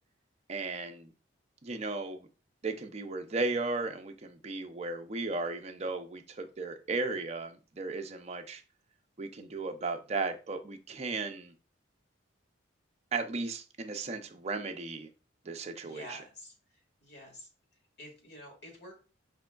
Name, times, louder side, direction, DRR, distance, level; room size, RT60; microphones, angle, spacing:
voice 1, 0.5-1.1 1.6-2.3 2.6-8.6 9.2-11.5 13.1-15.1 15.5-16.2, right 3 dB, 35° right, 6 dB, 0.5 m, -35 dB
voice 2, 15.8-17.5 18.0-18.9, equal, 55° left, 1 dB, 1.7 m, -49 dB
5.1 x 3.5 x 2.2 m, 0.34 s
head